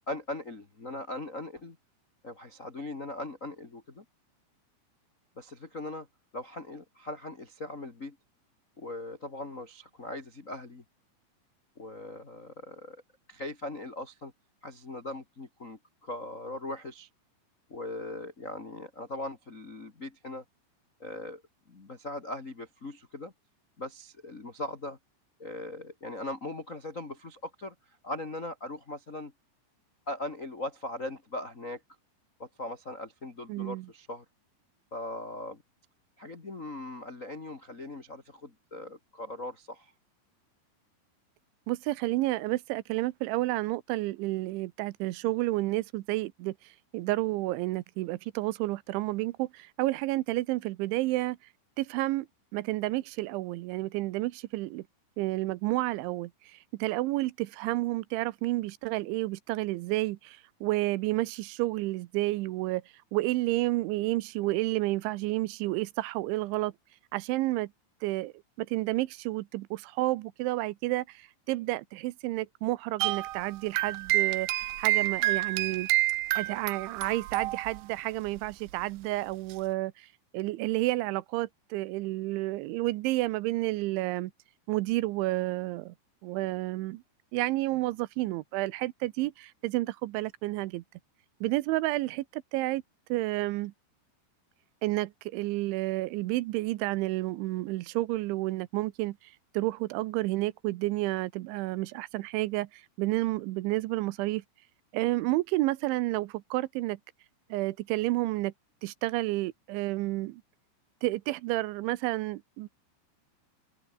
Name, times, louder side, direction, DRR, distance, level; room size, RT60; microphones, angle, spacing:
voice 1, 0.0-1.8 2.2-4.0 5.4-6.1 6.3-8.2 8.8-10.8 11.7-13.0 13.3-14.3 14.6-17.1 17.7-20.4 21.0-21.4 21.7-23.3 23.8-25.0 25.4-29.3 30.1-31.8 32.4-34.2 34.9-35.6 36.2-39.9, left 2 dB, 50° left, 0.9 m, -40 dB
voice 2, 33.5-33.9 41.7-51.4 51.8-52.3 52.5-54.9 55.2-62.8 63.1-66.7 67.1-67.7 68.0-75.9 76.4-80.1 80.3-84.3 84.7-85.9 86.2-87.0 87.3-90.8 91.4-92.8 93.1-93.7 94.8-104.4 104.9-107.0 107.5-108.5 108.8-110.4 111.0-112.7, right 19 dB, 90° right, 3.2 m, -30 dB
sound 1, 73.0-78.0 78.3-78.5 79.5-79.6, right 16 dB, 75° right, 2.6 m, -28 dB
open air
omnidirectional pair, 5.4 m